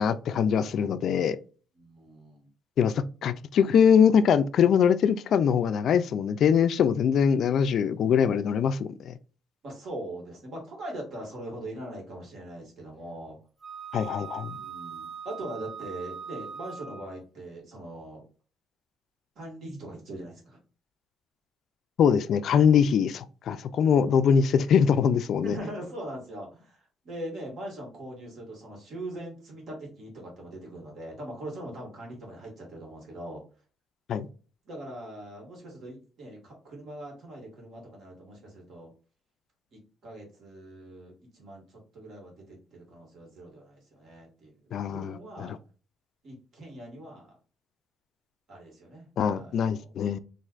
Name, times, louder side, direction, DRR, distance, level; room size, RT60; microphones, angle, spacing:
voice 1, 0.0-1.4 2.8-2.9 3.2-9.1 13.9-14.5 22.0-25.6 34.1-34.3 44.7-45.6 49.2-50.2, left 7 dB, 60° left, 0.3 m, -23 dB
voice 2, 1.8-2.5 9.6-13.4 14.5-18.2 19.4-20.6 25.4-33.4 34.7-38.9 39.7-44.6 44.9-45.6 46.2-47.3 48.5-49.1 49.3-49.9, right 1 dB, 60° right, 1.8 m, -41 dB
Wind instrument woodwind instrument, 13.6-17.2, right 7 dB, 15° right, 0.7 m, -41 dB
4.3 x 2.6 x 2.4 m
cardioid pair, 115°, 0 cm